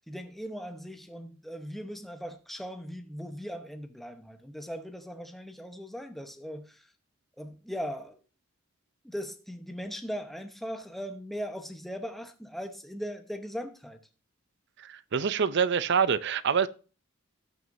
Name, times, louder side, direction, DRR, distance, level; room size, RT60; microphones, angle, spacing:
voice 1, 0.1-6.8 7.4-8.2 9.0-14.0, equal, ahead, 1.0 m, -39 dB
voice 2, 14.8-16.7, right 6 dB, 60° right, 0.5 m, -26 dB
18.5 x 6.2 x 2.7 m
head